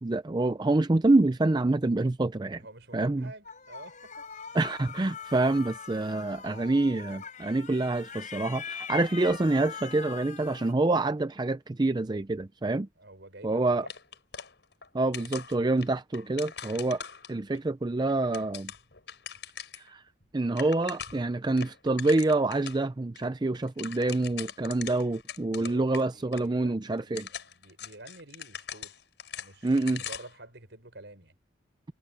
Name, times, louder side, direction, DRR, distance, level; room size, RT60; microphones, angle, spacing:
voice 1, 0.0-2.6 2.9-3.3 4.5-12.9 13.4-13.8 14.9-17.0 17.3-18.7 19.8-20.0 20.3-27.3 29.6-30.0, right 2 dB, 25° right, 0.5 m, -26 dB
voice 2, 2.6-4.6 13.0-14.0 25.6-28.9 29.4-31.3, right 2 dB, 70° right, 5.8 m, -50 dB
sound 1, 3.5-10.7, left 7 dB, 45° left, 3.9 m, -42 dB
sound 2, 13.9-14.9 15.1-17.6 18.1-19.9 20.2-20.3 20.5-21.3 21.6-22.8 23.1-23.2 23.5-26.0 26.3-26.4 27.0-30.4, left 8 dB, 65° left, 6.6 m, -42 dB
head